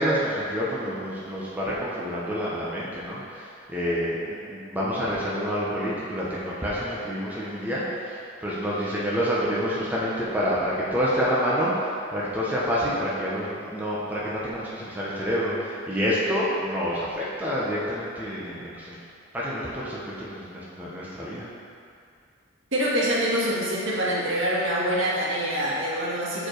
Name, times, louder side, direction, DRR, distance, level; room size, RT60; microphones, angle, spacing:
voice 1, 0.0-19.0 19.3-21.5, equal, 10° right, -8 dB, 1.0 m, -28 dB
voice 2, 22.7-26.5, equal, 75° right, -6 dB, 1.6 m, -25 dB
7.5 x 4.8 x 4.5 m, 2.3 s
head